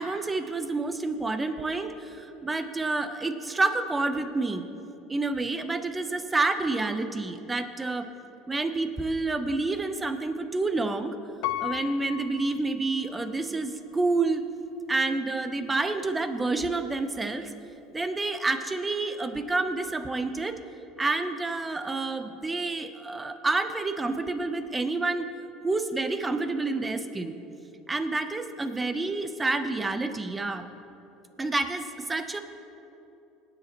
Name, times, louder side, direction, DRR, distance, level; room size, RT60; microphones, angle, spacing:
voice 1, 0.0-4.6 5.1-8.1 8.5-11.1 11.6-14.4 14.9-17.5 17.9-20.6 21.0-25.3 25.6-27.4 27.9-30.7 31.4-32.4, right 3 dB, 15° right, 9 dB, 0.8 m, -28 dB
Piano, 11.4-13.4 14.0-14.1, left 14 dB, 70° left, 0.5 m, -35 dB
19.5 x 9.5 x 3.0 m, 2.9 s
supercardioid pair, 115°, 0 cm